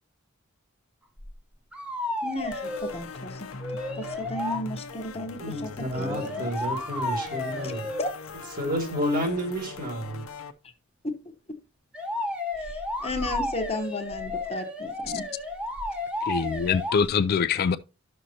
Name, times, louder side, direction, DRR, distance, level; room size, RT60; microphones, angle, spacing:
sound 1, 1.2-1.3 1.7-3.0 3.6-4.6 5.9-8.1 11.9-17.1, left 2 dB, 5° right, 0.9 m, -32 dB
voice 1, 2.2-3.5 4.0-6.5 7.6-7.7 8.0-8.1 12.7-15.3, left 2 dB, 30° left, 0.9 m, -34 dB
sound 2, 2.5-10.5, left 4 dB, 85° left, 0.7 m, -41 dB
voice 2, 5.4-7.9 8.6-10.2, equal, 45° right, 2.0 m, -30 dB
voice 3, 16.3-17.8, left 6 dB, 50° left, 0.3 m, -24 dB
11.0 x 6.5 x 2.8 m
head